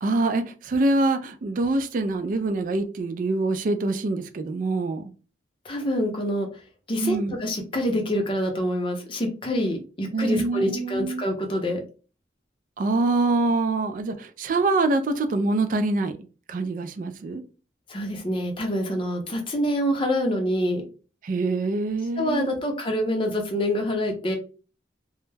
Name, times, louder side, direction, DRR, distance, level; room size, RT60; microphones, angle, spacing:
voice 1, 0.0-5.0 7.0-7.4 10.1-11.2 12.8-16.1 16.5-17.4 21.2-22.6, right 2 dB, 45° right, 0.3 m, -25 dB
voice 2, 5.6-6.5 6.9-11.8 17.9-20.8 22.2-24.4, equal, 30° left, 0.6 m, -26 dB
2.2 x 2.0 x 3.2 m
head